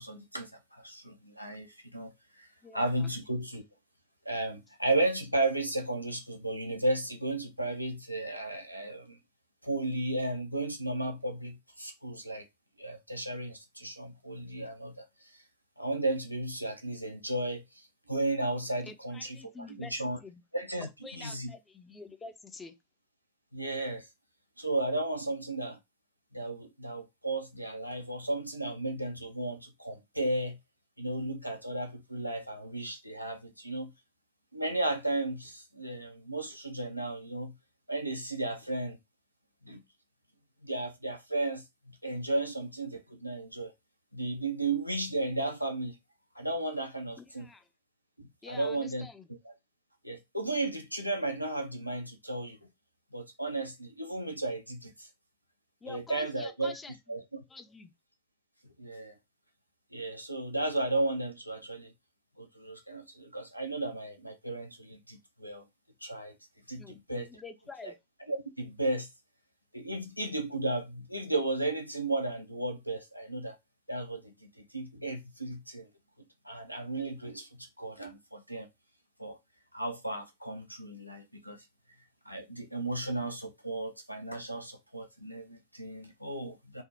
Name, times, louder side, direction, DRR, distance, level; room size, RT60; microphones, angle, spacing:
voice 1, 0.0-2.1 2.4-2.5 2.7-3.6 4.3-9.2 9.6-12.5 12.8-15.0 15.8-19.4 19.7-20.2 20.5-21.5 23.5-24.1 24.6-25.8 26.3-30.6 31.0-33.9 34.5-37.5 37.9-39.0 39.6-39.8 40.6-41.6 42.0-43.7 44.1-46.0 46.4-47.5 48.2-49.1 49.4-49.5 50.0-52.6 53.1-55.1 55.9-56.8 57.1-57.4 58.8-59.1 59.9-61.9 62.4-65.6 66.0-66.3 66.7-67.4 67.8-67.9 68.3-69.1 69.7-73.6 73.9-75.9 76.4-78.7 79.2-79.4 79.7-81.6 82.3-86.8, right 2 dB, 90° right, 0.5 m, -34 dB
voice 2, 2.6-3.1 18.8-20.4 21.0-22.7 47.2-47.7 48.4-49.3 55.8-57.2 57.5-57.9 66.8-68.0, left 4 dB, 15° left, 0.5 m, -48 dB
3.4 x 2.0 x 2.7 m
figure-of-eight pair, 90°, 0 cm